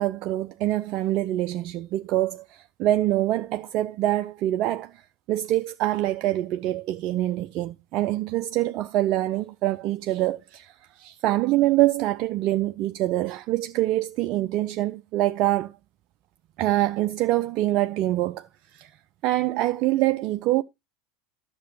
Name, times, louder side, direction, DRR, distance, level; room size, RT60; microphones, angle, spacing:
voice 1, 0.0-15.7 16.6-18.9 19.2-20.6, right 15 dB, 50° right, 0.4 m, -25 dB
12.0 x 6.7 x 3.1 m
figure-of-eight pair, 85°, 0 cm